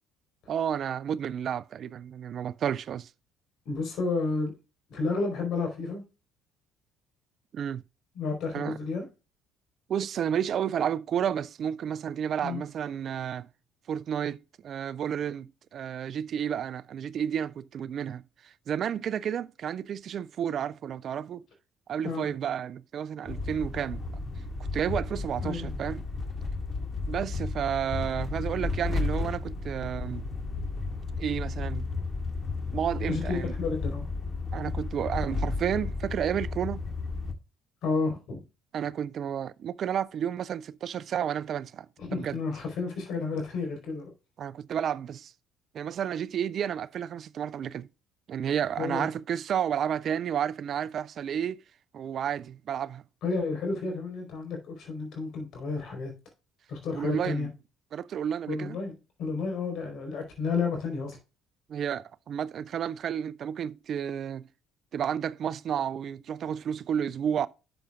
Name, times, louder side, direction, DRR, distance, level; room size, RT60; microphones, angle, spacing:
voice 1, 0.5-3.1 7.5-7.8 8.5-8.8 9.9-13.5 13.9-14.4 14.6-21.4 21.9-24.0 24.7-26.1 27.1-30.3 31.2-31.9 32.7-33.5 34.5-36.8 38.7-41.9 42.1-42.4 44.4-45.3 45.7-47.9 48.3-51.6 51.9-53.0 56.9-57.5 57.9-58.8 61.7-64.5 64.9-67.5, right 9 dB, 55° right, 0.4 m, -31 dB
voice 2, 3.6-4.5 4.9-6.0 8.1-9.0 12.4-12.6 22.0-22.2 25.4-25.7 33.1-34.1 37.8-38.4 42.0-44.1 48.8-49.1 53.2-56.1 56.7-57.5 58.5-58.9 59.2-61.2, left 4 dB, 65° left, 4.4 m, -31 dB
sound 1, 23.2-37.3, left 3 dB, 30° left, 1.9 m, -33 dB
11.5 x 6.9 x 2.4 m
hypercardioid pair, 60°, 0 cm